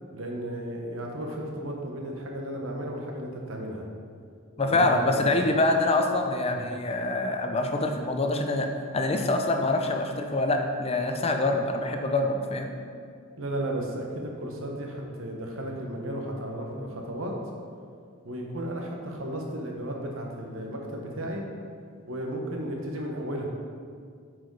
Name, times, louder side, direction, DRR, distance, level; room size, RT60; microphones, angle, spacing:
voice 1, 0.1-3.9 4.6-5.3 6.5-6.7 13.4-17.3 18.2-21.4 22.1-23.5, right 1 dB, 65° right, 0 dB, 1.1 m, -34 dB
voice 2, 4.6-8.7 8.9-12.7, left 2 dB, 30° left, 4 dB, 0.5 m, -25 dB
8.0 x 4.8 x 4.7 m, 2.2 s
head